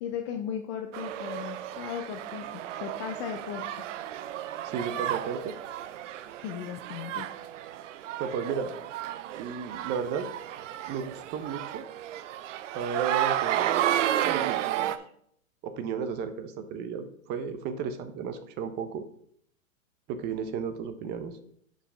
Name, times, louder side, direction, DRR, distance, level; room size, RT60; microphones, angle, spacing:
voice 1, 0.0-3.7 6.4-7.3, left 8 dB, 25° left, 5 dB, 0.4 m, -36 dB
sound 1, 0.9-15.0, right 12 dB, 65° right, 0.6 m, -32 dB
voice 2, 4.6-5.5 8.2-8.7 9.3-10.3 10.9-11.8 12.7-13.9 14.2-15.0 15.6-19.0 20.1-21.3, right 6 dB, 25° right, 10 dB, 0.6 m, -34 dB
9.6 x 5.1 x 3.4 m, 0.66 s
hypercardioid pair, 130°, 40 cm